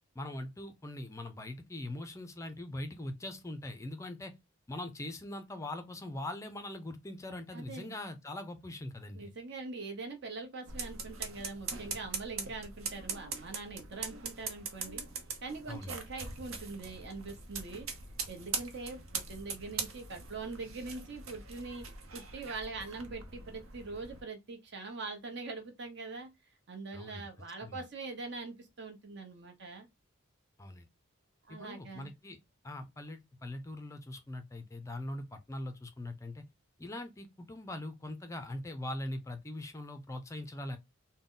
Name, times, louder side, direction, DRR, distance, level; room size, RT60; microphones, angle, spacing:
voice 1, 0.2-4.3 4.7-9.3 15.7-16.0 26.9-27.2 27.6-27.8 30.6-30.9 31.5-32.4 32.6-36.4 36.8-40.8, left 1 dB, 15° left, 0.4 m, -42 dB
voice 2, 7.5-7.9 9.2-15.0 15.4-17.9 18.3-21.9 22.1-26.3 26.7-29.9 31.5-32.1, right 3 dB, 55° right, 0.9 m, -43 dB
sound 1, 10.7-24.2, right 5 dB, 85° right, 0.8 m, -42 dB
3.7 x 2.1 x 3.7 m
head